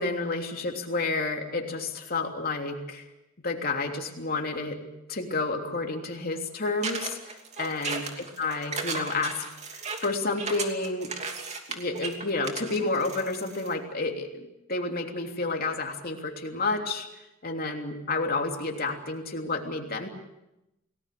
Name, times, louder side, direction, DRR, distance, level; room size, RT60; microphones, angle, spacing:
voice 1, 0.0-3.0 3.4-4.8 5.1-11.1 11.7-17.1 17.4-20.1, left 3 dB, 45° left, 3 dB, 3.2 m, -30 dB
sound 1, 6.8-13.7, right 4 dB, 35° right, 2.8 m, -35 dB
29.5 x 19.0 x 6.9 m, 0.92 s
head